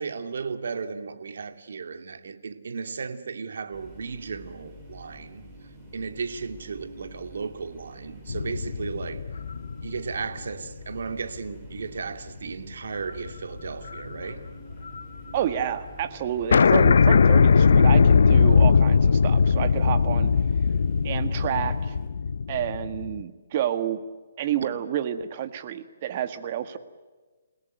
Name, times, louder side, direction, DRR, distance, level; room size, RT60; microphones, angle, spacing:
voice 1, 0.0-5.4 5.9-9.3 9.8-14.5, right 5 dB, 70° right, 2.5 m, -35 dB
sound 1, 3.7-22.1, equal, 10° right, 6.1 m, -47 dB
sound 2, 8.3-10.9 11.4-11.5 13.0-13.3 13.6-15.0 15.3-15.4 15.6-15.7 16.0-16.1 16.5-23.2, left 5 dB, 70° left, 0.7 m, -20 dB
voice 2, 15.3-20.3 21.0-21.9 22.5-24.0 24.4-26.8, right 10 dB, 35° right, 1.7 m, -29 dB
30.0 x 17.5 x 9.3 m
hypercardioid pair, 165°, 0 cm